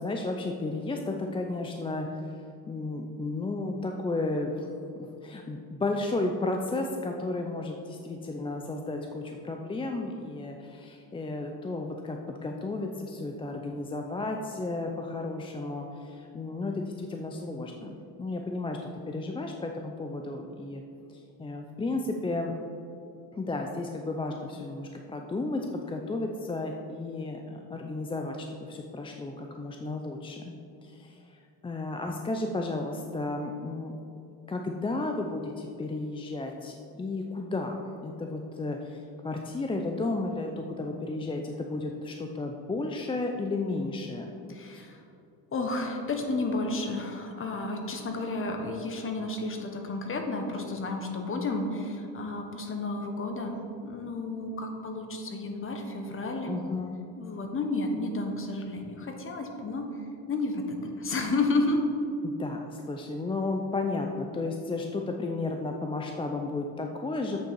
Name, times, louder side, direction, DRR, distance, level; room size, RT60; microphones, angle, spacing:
voice 1, 0.0-2.3 2.7-4.7 5.2-18.8 19.1-20.8 21.1-22.5 23.3-30.5 30.8-34.0 34.5-44.3 44.7-44.8 56.5-57.0 62.2-67.4, left 2 dB, 15° left, 3 dB, 0.4 m, -33 dB
voice 2, 44.5-45.0 45.5-56.5 57.2-59.9 60.3-61.8, left 2 dB, 30° left, 4 dB, 1.2 m, -31 dB
8.3 x 6.5 x 4.6 m, 2.6 s
cardioid pair, 110°, 41 cm